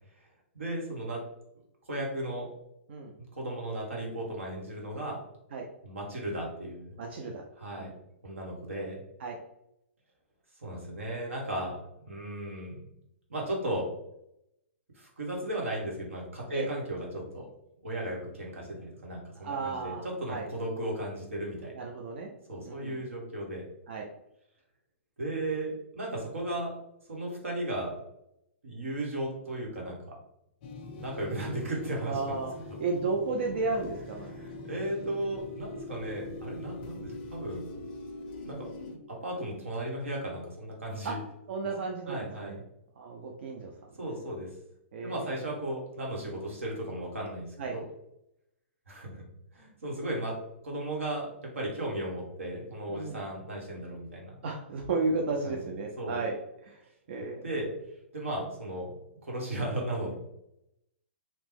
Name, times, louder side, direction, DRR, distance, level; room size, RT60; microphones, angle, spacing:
voice 1, 0.5-1.2 1.9-2.5 3.2-5.2 5.8-6.9 7.6-7.9 8.2-9.0 10.6-11.8 12.0-12.8 13.3-13.9 15.0-17.5 17.8-21.7 22.5-23.6 25.2-26.7 27.1-27.9 28.6-29.9 30.9-32.3 34.3-37.6 38.4-41.2 42.1-42.6 44.0-44.5 45.0-47.8 48.9-49.2 49.5-50.3 50.6-54.4 55.4-55.6 56.0-56.2 57.4-57.7 58.1-58.9 59.2-60.1, right 1 dB, 90° right, -1 dB, 1.2 m, -35 dB
voice 2, 7.0-7.4 7.7-7.9 9.2-9.4 16.5-16.7 19.4-20.5 21.8-22.3 22.6-23.0 23.9-24.1 32.1-32.5 32.8-34.3 41.0-41.2 41.5-42.6 43.0-43.7 44.9-45.4 47.6-47.8 52.9-53.2 54.4-56.4 56.6-56.8 57.1-57.5, right 3 dB, 60° right, 1 dB, 0.5 m, -33 dB
sound 1, 30.6-39.0, left 2 dB, 45° left, 0.5 m, -42 dB
2.9 x 2.0 x 3.4 m, 0.81 s
hypercardioid pair, 130°, 7 cm